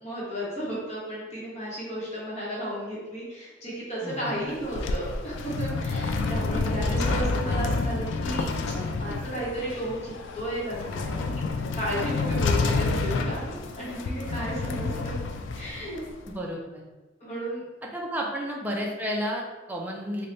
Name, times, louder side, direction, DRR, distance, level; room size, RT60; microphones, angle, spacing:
voice 1, 0.0-8.5 9.0-11.4 11.7-15.2 15.5-16.0 17.2-17.6, right 1 dB, 35° left, -7 dB, 1.0 m, -33 dB
voice 2, 4.0-4.3 4.7-4.8 8.7-9.2 16.3-16.8 17.9-20.3, equal, 10° right, -1 dB, 0.4 m, -32 dB
sound 1, 4.4-16.3, left 3 dB, 80° left, 0.3 m, -29 dB
3.2 x 2.2 x 3.8 m, 1.2 s
head